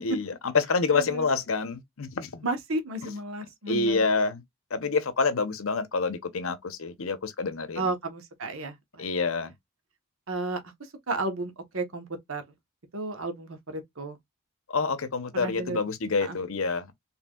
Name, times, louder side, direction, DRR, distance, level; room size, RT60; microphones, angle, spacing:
voice 1, 0.0-2.5 3.0-3.1 3.7-4.4 4.7-7.9 9.0-9.5 14.7-16.9, left 4 dB, 75° left, 0.8 m, -27 dB
voice 2, 0.9-1.2 2.4-4.0 7.8-9.0 10.3-10.6 11.1-12.4 12.9-14.2 15.3-15.8 16.2-16.4, right 2 dB, 70° right, 1.1 m, -33 dB
4.3 x 3.4 x 2.3 m
head